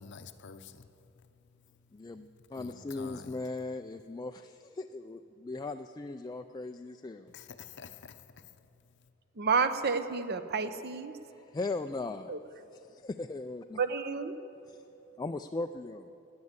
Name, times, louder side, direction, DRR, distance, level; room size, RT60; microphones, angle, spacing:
voice 1, 0.0-3.5 7.3-9.1, left 5 dB, 55° left, 0.7 m, -51 dB
voice 2, 1.9-7.3 11.3-12.4 12.7-13.8 14.7-14.8 15.2-16.1, left 3 dB, 20° left, 0.3 m, -38 dB
voice 3, 9.4-11.1 12.3-12.4 13.8-14.4, right 5 dB, 50° right, 0.8 m, -30 dB
17.0 x 9.6 x 8.0 m
head